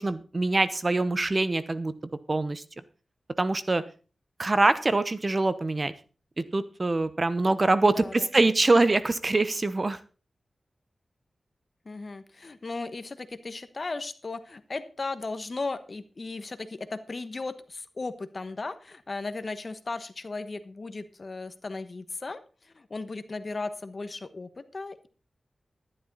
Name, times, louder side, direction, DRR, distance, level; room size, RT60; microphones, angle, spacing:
voice 1, 0.0-1.9 2.3-2.6 3.4-3.8 4.4-5.9 6.4-10.0, right 2 dB, 35° right, 13 dB, 0.9 m, -24 dB
voice 2, 7.8-8.3 11.8-22.4 22.7-25.1, left 3 dB, 45° left, 11 dB, 1.2 m, -36 dB
12.5 x 11.0 x 4.1 m, 0.36 s
wide cardioid pair, 70°, 0 cm